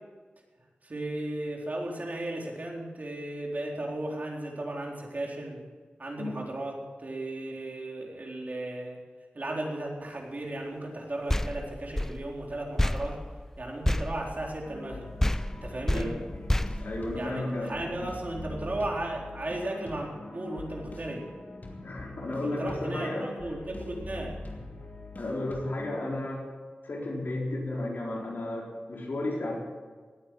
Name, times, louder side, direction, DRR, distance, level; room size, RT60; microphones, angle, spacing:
voice 1, 0.8-5.6 6.0-9.0 9.3-13.2 13.6-15.1 15.6-16.2 17.2-21.3 22.4-24.4, right 1 dB, 50° right, -1 dB, 3.9 m, -35 dB
sound 1, 11.3-14.9 15.2-17.7, left 1 dB, 10° left, 0.5 m, -30 dB
sound 2, 14.6-26.1, left 2 dB, 50° left, 2.6 m, -43 dB
voice 2, 16.8-18.1 21.8-23.3 25.2-26.5 26.8-29.6, left 1 dB, 70° left, -2 dB, 4.4 m, -33 dB
18.5 x 9.2 x 7.7 m, 1.5 s
cardioid pair, 45°, 4 cm